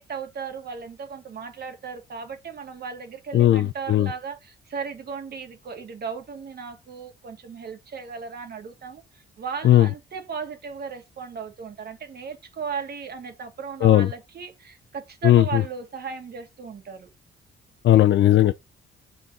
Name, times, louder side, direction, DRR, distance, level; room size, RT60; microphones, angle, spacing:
voice 1, 0.0-9.0 9.4-17.1, right 6 dB, 55° right, 2.4 m, -36 dB
voice 2, 3.3-4.1 9.6-9.9 13.8-14.1 15.2-15.6 17.8-18.5, left 13 dB, 65° left, 0.7 m, -17 dB
6.2 x 5.3 x 5.4 m
cardioid pair, 90°, 20 cm